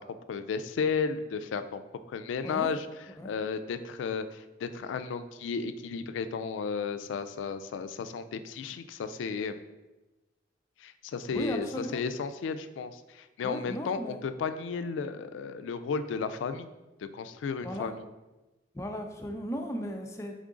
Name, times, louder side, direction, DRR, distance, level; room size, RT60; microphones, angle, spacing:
voice 1, 0.3-1.8 2.1-2.9 3.2-9.5 10.8-16.7 17.1-18.0, left 5 dB, 90° left, 10 dB, 0.3 m, -33 dB
voice 2, 11.3-12.0 13.4-14.2 17.6-17.9 18.7-20.3, equal, 15° left, 3 dB, 0.4 m, -36 dB
3.7 x 3.7 x 3.6 m, 1.1 s
head